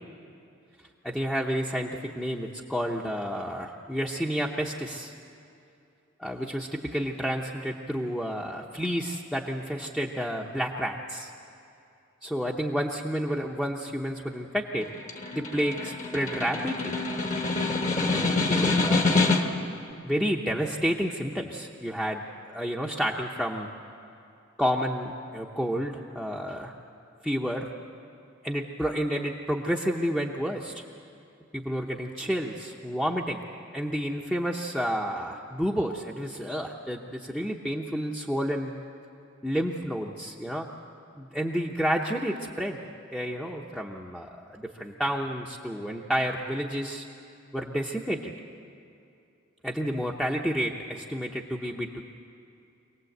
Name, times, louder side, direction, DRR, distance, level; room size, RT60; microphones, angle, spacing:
voice 1, 1.0-5.1 6.2-11.3 12.2-14.9 15.3-16.9 17.9-19.3 20.0-23.7 24.6-26.7 27.2-27.7 28.4-30.8 31.5-33.4 33.7-38.8 39.4-40.7 41.1-42.8 43.1-47.1 47.5-48.3 49.6-52.0, equal, 5° left, -2 dB, 0.9 m, -30 dB
Snare drum, 14.8-19.7, left 3 dB, 40° left, 1.5 m, -26 dB
25.5 x 18.5 x 8.0 m, 2.6 s
head